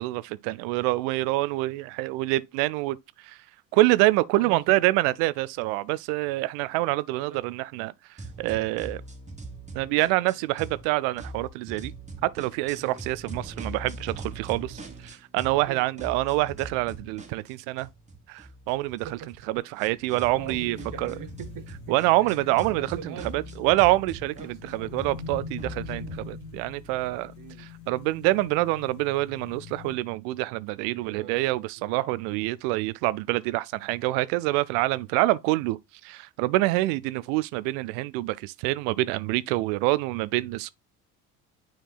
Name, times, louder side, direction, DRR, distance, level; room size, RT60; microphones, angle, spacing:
voice 1, 0.0-3.0 3.2-3.4 3.7-7.9 8.4-9.0 9.7-11.9 12.2-17.9 18.3-19.1 19.5-21.1 21.9-27.3 27.6-40.7, right 19 dB, 60° right, 0.5 m, -26 dB
voice 2, 4.4-4.8 7.1-7.5 12.8-13.0 15.7-15.8 19.0-20.0 20.3-22.4 22.7-23.7 24.3-25.0 25.3-26.3 27.4-27.7 30.8-31.4 31.8-32.2, right 9 dB, 45° right, 1.0 m, -44 dB
sound 1, 8.2-10.8 11.1-15.7 16.0-26.2, right 2 dB, 15° right, 1.7 m, -42 dB
sound 2, 20.3-29.9, left 6 dB, 70° left, 1.9 m, -43 dB
9.2 x 4.4 x 2.3 m
hypercardioid pair, 60°, 44 cm